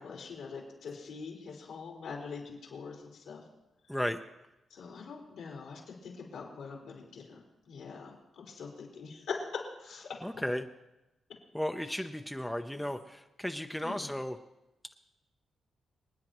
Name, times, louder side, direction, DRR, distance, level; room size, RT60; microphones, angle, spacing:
voice 1, 0.0-3.4 4.7-7.4 7.7-10.4 13.8-14.1, left 5 dB, 85° left, -3 dB, 4.1 m, -43 dB
voice 2, 3.9-4.2 10.2-10.7 11.5-14.4, equal, 5° left, 6 dB, 0.6 m, -34 dB
28.0 x 9.4 x 3.0 m, 0.97 s
cardioid pair, 90°, 0 cm